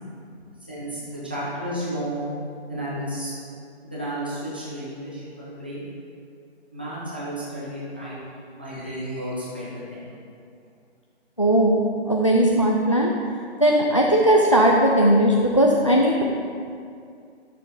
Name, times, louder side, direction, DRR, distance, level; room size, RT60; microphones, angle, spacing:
voice 1, 0.7-2.3 2.7-3.3 3.8-5.8 6.7-8.2 8.5-10.1, right 1 dB, 10° right, -9 dB, 0.7 m, -32 dB
voice 2, 11.4-13.1 13.6-16.2, right 1 dB, 30° left, -1 dB, 0.4 m, -18 dB
11.5 x 6.7 x 3.9 m, 2.4 s
hypercardioid pair, 175°, 32 cm